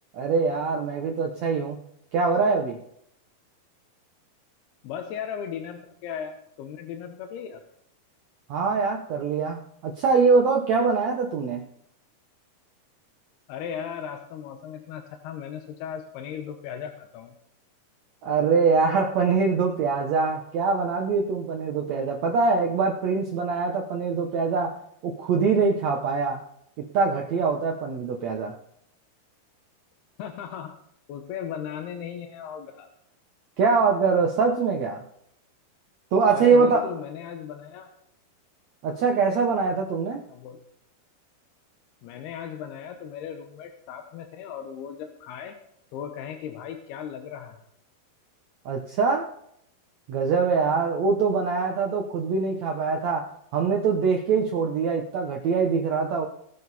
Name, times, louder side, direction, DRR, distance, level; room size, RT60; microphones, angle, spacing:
voice 1, 0.1-1.8 2.1-2.8 8.5-11.6 18.2-26.4 26.8-28.6 33.6-35.0 36.1-36.9 38.8-40.2 48.6-49.3 50.1-56.3, right 4 dB, 75° right, 2 dB, 1.6 m, -23 dB
voice 2, 4.8-7.6 13.5-17.3 30.2-30.8 31.1-32.9 36.3-37.9 40.3-40.6 42.0-45.5 45.9-47.6, left 8 dB, 80° left, 5 dB, 2.9 m, -37 dB
19.5 x 6.8 x 4.1 m, 0.74 s
omnidirectional pair, 4.5 m